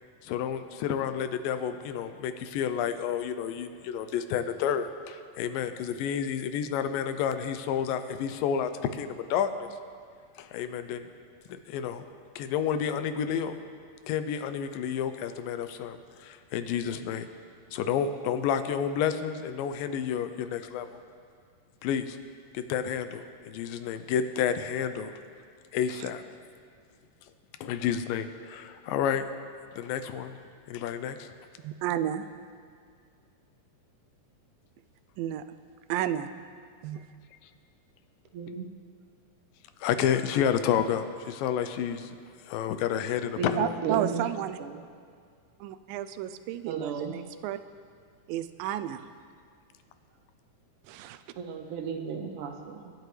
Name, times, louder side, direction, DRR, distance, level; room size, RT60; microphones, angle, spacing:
voice 1, 0.2-9.5 10.4-11.0 11.7-12.0 12.4-13.5 14.1-17.3 17.7-20.9 21.8-22.2 22.5-25.1 25.7-26.2 27.6-29.3 29.8-30.3 30.7-31.3 39.8-42.1 42.5-43.7, left 8 dB, 90° left, 10 dB, 2.4 m, -30 dB
voice 2, 31.6-32.3 35.2-35.4 35.9-36.3 36.8-37.0 43.6-44.6 45.6-47.6 48.3-49.1 50.9-51.2, right 11 dB, 85° right, 12 dB, 2.3 m, -32 dB
voice 3, 38.3-38.7 43.4-44.8 46.7-47.2 51.4-52.9, right 6 dB, 70° right, 4 dB, 2.3 m, -34 dB
25.0 x 11.0 x 3.3 m, 2.2 s
omnidirectional pair, 3.9 m